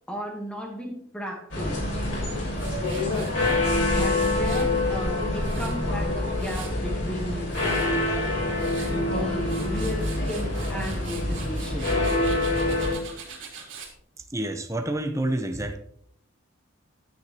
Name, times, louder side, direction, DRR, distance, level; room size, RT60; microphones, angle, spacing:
voice 1, 0.1-1.9 3.9-7.5 8.9-12.0, equal, 5° left, 0 dB, 1.3 m, -34 dB
sound 1, 1.5-12.9, left 2 dB, 60° left, 3.7 m, -26 dB
Tools, 2.6-4.7 5.2-6.8 7.3-7.9 8.4-8.9 9.3-13.9, right 6 dB, 70° right, 2.9 m, -43 dB
voice 2, 14.3-15.8, right 1 dB, 15° right, 7 dB, 0.7 m, -28 dB
9.7 x 9.0 x 2.9 m, 0.68 s
head